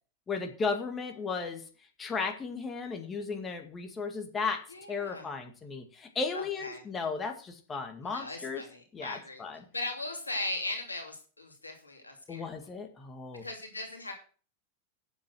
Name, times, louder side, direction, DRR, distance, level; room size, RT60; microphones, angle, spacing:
voice 1, 0.3-1.6 2.0-4.6 4.9-8.6 8.9-9.6 12.3-13.5, left 4 dB, 20° left, 4 dB, 2.0 m, -35 dB
voice 2, 4.7-5.3 6.3-6.8 8.0-9.4 9.7-12.5 13.4-14.1, left 2 dB, 80° left, 3 dB, 2.6 m, -38 dB
9.0 x 7.4 x 6.2 m, 0.39 s
figure-of-eight pair, 90°, 0 cm